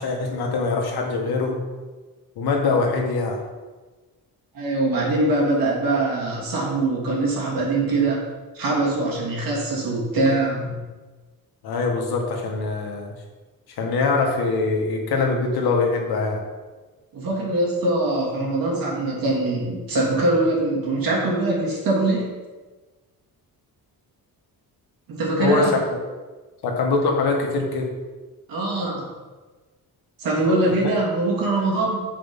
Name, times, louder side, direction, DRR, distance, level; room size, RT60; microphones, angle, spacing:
voice 1, 0.0-1.6 2.4-3.4 11.6-13.1 13.8-16.4 25.4-26.0 26.6-27.9 30.8-30.9, left 3 dB, 85° left, 1 dB, 1.7 m, -23 dB
voice 2, 4.5-8.2 8.5-10.8 17.1-22.3 25.1-25.7 28.5-29.1 30.2-32.0, right 2 dB, 65° right, -3 dB, 2.7 m, -22 dB
7.8 x 5.2 x 5.4 m, 1.3 s
cardioid pair, 150°, 37 cm